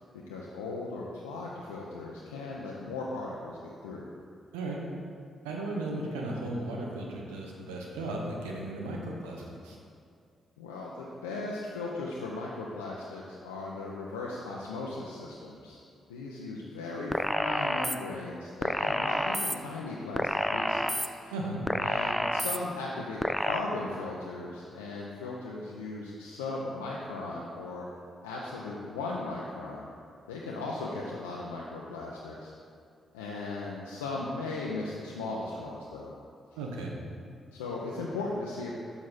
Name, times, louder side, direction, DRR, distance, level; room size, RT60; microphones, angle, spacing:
voice 1, 0.1-4.1 10.6-15.8 16.1-21.3 21.8-27.9 28.2-29.9 30.3-32.5 33.1-36.1 37.5-38.7, left 3 dB, 90° left, -4 dB, 0.5 m, -37 dB
voice 2, 5.4-9.8 21.3-21.6 36.6-36.9, right 2 dB, 85° right, -1 dB, 0.8 m, -35 dB
sound 1, 17.1-18.0 18.6-19.6 20.2-21.1 21.7-22.6 23.2-23.6, equal, 5° left, 0.4 m, -29 dB
6.5 x 5.9 x 4.1 m, 2.3 s
hypercardioid pair, 40°, 0 cm